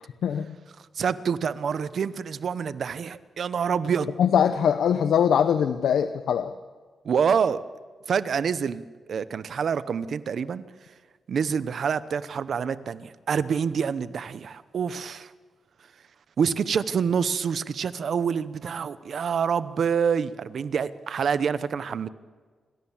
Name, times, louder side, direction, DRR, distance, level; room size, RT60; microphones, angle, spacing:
voice 1, 1.0-4.1 7.0-7.6 8.1-10.6 11.3-15.3 16.4-22.1, right 6 dB, 70° right, 14 dB, 0.9 m, -27 dB
voice 2, 4.2-6.5, left 8 dB, 85° left, 10 dB, 0.7 m, -22 dB
27.5 x 13.0 x 7.3 m, 1.5 s
cardioid pair, 75°, 0 cm